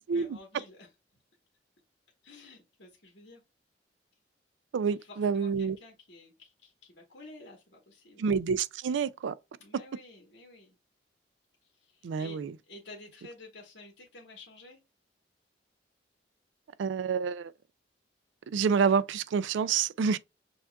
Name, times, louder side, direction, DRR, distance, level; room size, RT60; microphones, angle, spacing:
voice 1, 0.1-0.9 2.2-3.4 4.9-8.3 9.6-10.8 11.6-14.8, left 2 dB, 70° left, 1.2 m, -51 dB
voice 2, 4.7-5.8 8.2-9.3 12.0-12.5 16.8-17.5 18.5-20.2, right 6 dB, 80° right, 0.3 m, -28 dB
6.9 x 2.4 x 2.3 m
head